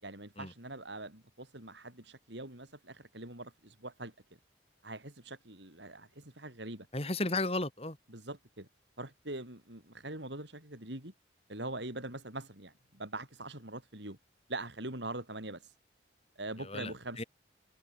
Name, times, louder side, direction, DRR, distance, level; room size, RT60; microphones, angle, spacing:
voice 1, 0.0-4.1 4.8-6.9 8.1-8.7 9.0-11.1 11.5-14.2 14.5-15.7 16.4-17.3, right 2 dB, 70° right, 6.3 m, -43 dB
voice 2, 6.9-8.0 16.6-17.2, left 2 dB, 30° left, 3.1 m, -34 dB
head